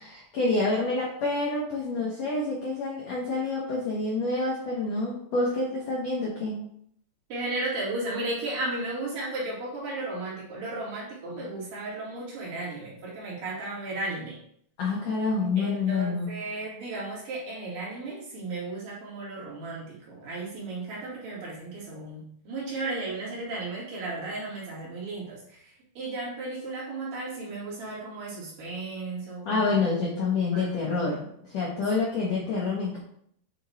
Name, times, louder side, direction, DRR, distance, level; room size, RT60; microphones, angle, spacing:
voice 1, 0.0-6.6 11.3-11.4 14.8-16.3 29.4-31.2 31.5-33.0, left 3 dB, 90° left, -4 dB, 1.5 m, -27 dB
voice 2, 7.3-14.4 15.6-29.8 30.5-30.7, right 2 dB, 55° right, -6 dB, 3.5 m, -35 dB
8.8 x 3.0 x 4.2 m, 0.67 s
omnidirectional pair, 4.8 m